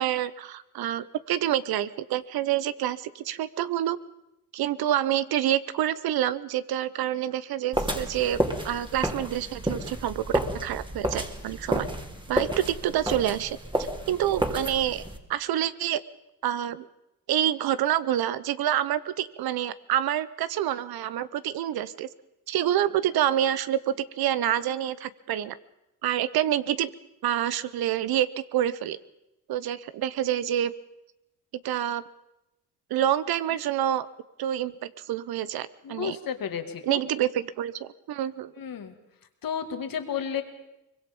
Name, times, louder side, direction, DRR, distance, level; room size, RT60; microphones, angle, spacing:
voice 1, 0.0-4.0 4.5-8.4 8.6-11.9 12.3-13.6 14.1-15.0 15.3-16.0 16.4-16.9 17.3-22.1 22.5-25.6 26.0-26.9 27.2-29.0 29.5-30.7 31.6-32.0 32.9-34.1 34.4-36.2 36.8-38.5, right 11 dB, 90° right, 16 dB, 0.9 m, -27 dB
sound 1, 7.7-15.2, right 1 dB, 15° right, 2.8 m, -31 dB
voice 2, 35.8-37.0 38.6-38.9 39.4-40.4, left 8 dB, 70° left, 7 dB, 2.3 m, -32 dB
23.5 x 21.5 x 5.3 m, 0.90 s
cardioid pair, 75°, 36 cm